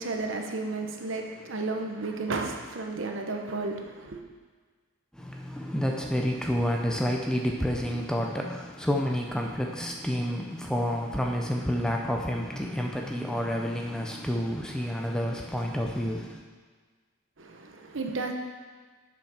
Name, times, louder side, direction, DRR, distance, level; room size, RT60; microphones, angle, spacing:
voice 1, 0.0-4.2 17.4-18.3, right 3 dB, 60° right, 3 dB, 0.9 m, -33 dB
voice 2, 5.1-16.4, equal, 5° left, 1 dB, 0.6 m, -29 dB
7.5 x 5.8 x 5.7 m, 1.5 s
head